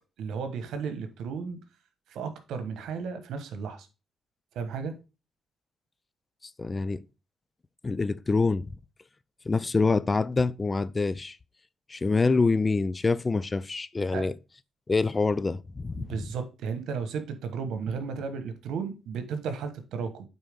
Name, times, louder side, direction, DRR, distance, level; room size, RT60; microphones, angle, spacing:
voice 1, 0.2-1.6 2.1-3.9 4.5-4.9 14.1-14.3 15.9-20.2, right 5 dB, 80° right, 1.3 m, -34 dB
voice 2, 6.6-7.0 7.8-8.7 9.5-11.4 11.9-14.3 14.9-16.3, left 3 dB, 25° left, 0.4 m, -26 dB
9.1 x 4.0 x 3.6 m
cardioid pair, 90°, 0 cm